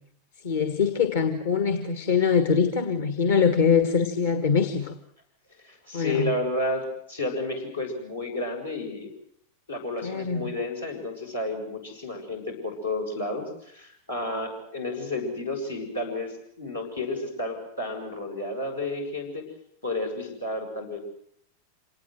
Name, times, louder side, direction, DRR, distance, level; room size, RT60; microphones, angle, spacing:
voice 1, 0.4-4.9 5.9-6.3 10.0-10.5, left 6 dB, 60° left, 9 dB, 1.6 m, -23 dB
voice 2, 5.6-9.1 9.7-19.5 19.8-21.0, left 2 dB, 85° left, 0 dB, 7.2 m, -31 dB
26.5 x 19.0 x 8.0 m, 0.68 s
figure-of-eight pair, 90°, 0 cm